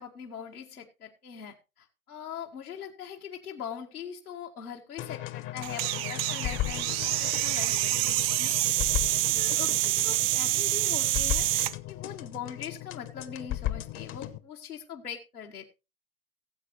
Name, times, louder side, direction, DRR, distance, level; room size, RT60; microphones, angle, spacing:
voice 1, 0.0-8.8 9.3-15.7, left 8 dB, 85° left, -1 dB, 1.9 m, -42 dB
sound 1, 5.0-14.4, left 14 dB, 30° left, 0.9 m, -36 dB
sound 2, 5.6-11.7, right 16 dB, 45° right, 0.6 m, -27 dB
18.0 x 7.8 x 3.2 m, 0.27 s
hypercardioid pair, 105°, 43 cm